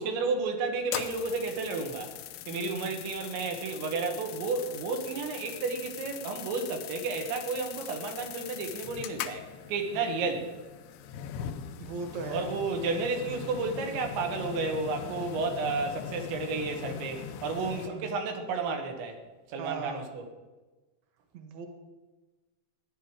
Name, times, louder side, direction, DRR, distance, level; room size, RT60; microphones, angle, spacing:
voice 1, 0.0-2.1 2.5-10.5 12.3-19.2 19.5-20.2, right 4 dB, 85° right, 4 dB, 4.0 m, -32 dB
sound 1, 0.8-17.9, left 9 dB, 80° left, 2.5 m, -41 dB
voice 2, 2.5-2.9 9.9-10.3 11.8-12.5 17.7-18.1 19.6-20.1 21.3-21.7, right 4 dB, 55° right, 5 dB, 2.3 m, -39 dB
16.0 x 11.0 x 5.0 m, 1.2 s
omnidirectional pair, 5.1 m